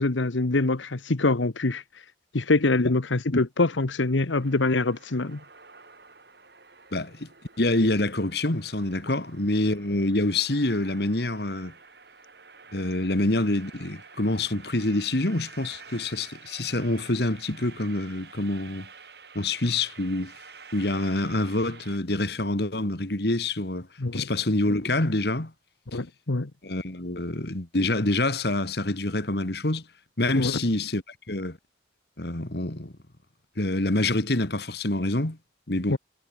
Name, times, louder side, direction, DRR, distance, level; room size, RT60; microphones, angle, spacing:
voice 1, 0.0-1.8 2.3-5.4 24.0-24.3 25.9-26.5 30.4-30.6 35.9-36.0, left 2 dB, 85° left, 1.1 m, -24 dB
sound 1, 4.4-22.0, right 5 dB, 60° right, 6.4 m, -49 dB
voice 2, 6.9-7.3 7.6-11.7 12.7-18.9 19.4-20.3 20.7-23.9 24.1-25.5 26.6-29.8 30.2-31.6 32.2-32.9 33.6-35.4 35.7-36.0, left 2 dB, 60° left, 1.9 m, -26 dB
head